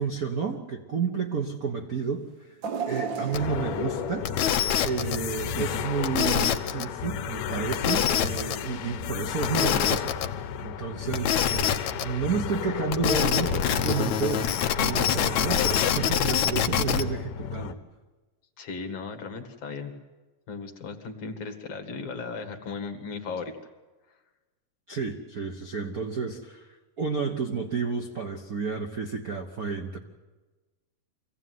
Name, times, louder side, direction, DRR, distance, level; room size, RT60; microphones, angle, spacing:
voice 1, 0.0-2.5 2.9-4.3 4.8-17.8 24.9-26.7 27.0-30.0, right 5 dB, 85° right, 4 dB, 0.8 m, -31 dB
sound 1, 2.6-5.8 6.2-6.3 7.4-7.5, right 6 dB, 60° right, 1.2 m, -36 dB
sound 2, 3.3-17.7, left 8 dB, 90° left, 2.5 m, -33 dB
sound 3, 3.3-3.4 4.2-5.2 6.0-6.8 7.7-8.5 9.4-10.3 11.1-12.0 12.9-17.0, left 9 dB, 70° left, 2.1 m, -25 dB
voice 2, 18.6-19.9 20.5-23.5, left 4 dB, 50° left, 6 dB, 2.6 m, -36 dB
25.0 x 17.0 x 9.4 m, 1.2 s
omnidirectional pair, 3.7 m